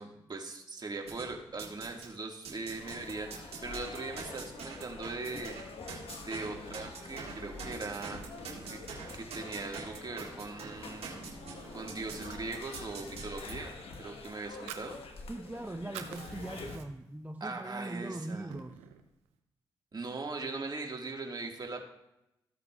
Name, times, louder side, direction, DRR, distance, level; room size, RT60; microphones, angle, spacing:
voice 1, 0.0-5.6 5.9-8.2 8.6-8.8 9.1-11.2 11.7-15.0 17.4-18.5 19.9-21.8, right 3 dB, 40° right, 1 dB, 1.9 m, -40 dB
sound 1, 1.1-2.1 2.4-13.5, right 5 dB, 70° right, 1.8 m, -45 dB
sound 2, 2.8-16.8, left 3 dB, 65° left, 1.4 m, -46 dB
Fire, 14.4-15.6 15.8-17.2 17.6-17.7 18.1-19.1, right 9 dB, 85° right, 0.6 m, -46 dB
voice 2, 15.3-18.8, right 2 dB, 15° right, 6 dB, 0.6 m, -41 dB
14.5 x 8.0 x 2.4 m, 0.88 s
hypercardioid pair, 40°, 11 cm